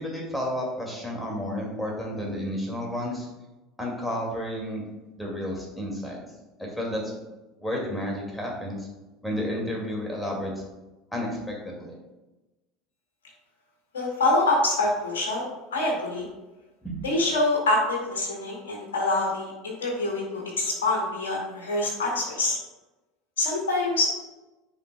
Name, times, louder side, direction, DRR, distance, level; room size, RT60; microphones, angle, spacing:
voice 1, 0.0-3.3 3.8-4.8 5.2-6.2 6.6-7.0 7.6-8.9 9.2-10.5 11.1-11.9 16.8-17.0, equal, 5° left, -2 dB, 2.3 m, -31 dB
voice 2, 13.9-16.3 17.0-22.6 23.4-24.1, left 2 dB, 70° left, -2 dB, 2.2 m, -25 dB
9.5 x 5.2 x 2.3 m, 1.1 s
figure-of-eight pair, 70°, 0 cm